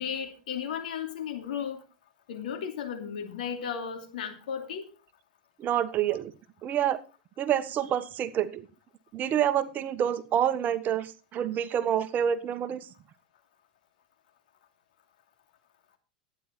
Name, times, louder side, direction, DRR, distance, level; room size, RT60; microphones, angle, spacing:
voice 1, 0.0-1.8 2.3-4.9, left 7 dB, 80° left, 5 dB, 2.7 m, -34 dB
voice 2, 5.6-6.3 6.6-7.0 7.4-8.6 9.1-12.9, right 10 dB, 40° right, 11 dB, 1.3 m, -27 dB
12.0 x 9.6 x 4.3 m, 0.32 s
hypercardioid pair, 100°, 5 cm